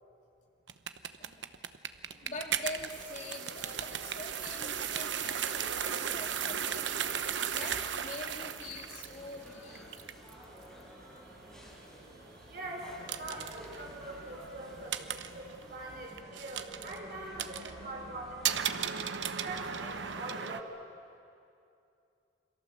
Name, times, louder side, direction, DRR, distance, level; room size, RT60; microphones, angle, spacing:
sound 1, 0.7-20.6, right 8 dB, 85° right, 0.9 m, -37 dB
sound 2, 1.8-20.5, equal, 5° left, 6.0 m, -53 dB
voice 1, 2.2-7.0 7.5-9.9, left 2 dB, 40° left, 1 dB, 3.1 m, -44 dB
voice 2, 10.9-18.8 19.4-20.8, right 2 dB, 55° right, -1 dB, 4.7 m, -44 dB
29.0 x 23.0 x 7.7 m, 2.6 s
head